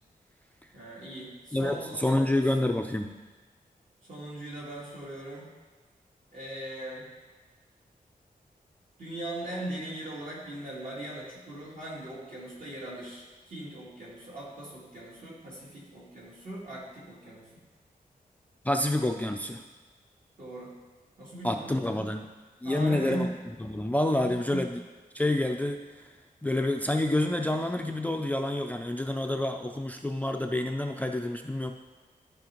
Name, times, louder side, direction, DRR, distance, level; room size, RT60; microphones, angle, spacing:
voice 1, 0.7-2.2 4.1-5.5 6.3-7.1 9.0-17.5 20.4-20.7 21.2-22.1 22.6-23.3 24.2-24.6, right 1 dB, 60° right, -7 dB, 2.7 m, -39 dB
voice 2, 1.5-3.1 18.6-19.6 21.4-22.2 22.6-23.3 23.6-24.8 25.1-26.1 26.4-31.7, left 1 dB, 10° left, 4 dB, 0.3 m, -28 dB
13.0 x 5.1 x 3.0 m, 1.3 s
wide cardioid pair, 135°, 15 cm